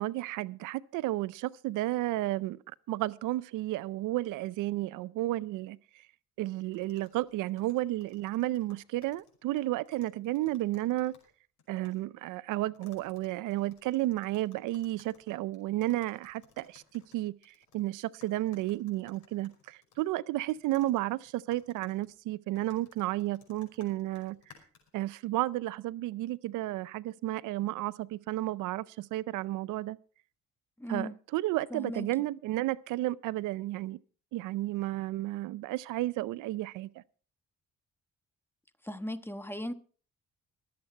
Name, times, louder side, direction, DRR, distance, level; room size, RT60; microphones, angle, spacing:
voice 1, 0.0-2.6 2.9-5.8 6.4-11.1 11.7-24.4 24.9-30.0 30.9-34.0 34.3-36.9, right 16 dB, 90° right, 0.5 m, -32 dB
sound 1, 6.7-11.3 11.6-12.0 12.7-17.8 18.2-20.1 20.5-25.0, left 7 dB, 80° left, 5.3 m, -61 dB
voice 2, 30.8-31.2 31.7-32.1 38.8-39.7, left 1 dB, 5° left, 1.2 m, -37 dB
22.5 x 8.1 x 4.3 m
cardioid pair, 90°, 30 cm